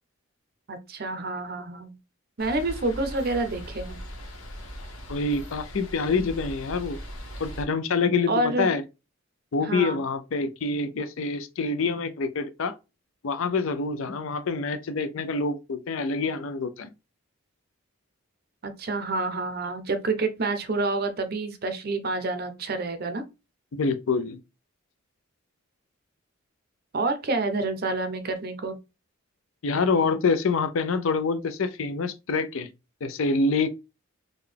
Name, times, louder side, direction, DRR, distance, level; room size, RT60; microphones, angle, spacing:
voice 1, 0.7-1.9 2.4-4.0 8.3-8.7 9.6-10.0 18.6-23.2 26.9-28.8, right 2 dB, 45° right, 0.6 m, -28 dB
sound 1, 2.4-7.6, equal, 80° left, 1.1 m, -39 dB
voice 2, 5.1-7.0 7.4-8.8 9.5-12.7 13.2-16.9 23.7-24.4 29.6-32.7 33.0-33.7, left 4 dB, 65° left, 0.5 m, -26 dB
3.8 x 2.2 x 3.3 m
head